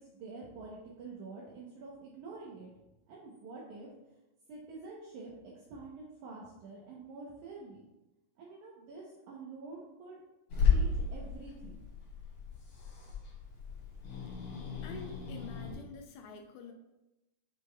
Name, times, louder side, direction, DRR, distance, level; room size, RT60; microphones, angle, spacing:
voice 1, 0.0-2.7 3.1-3.9 4.5-7.8 8.4-10.2 10.7-11.8, right 3 dB, 75° right, -4 dB, 1.8 m, -47 dB
Growling / Hiss, 10.5-15.7, left 5 dB, 55° left, 3.5 m, -33 dB
voice 2, 14.8-16.7, left 3 dB, 80° left, 4 dB, 2.3 m, -47 dB
9.6 x 5.4 x 2.2 m, 1.0 s
omnidirectional pair, 4.6 m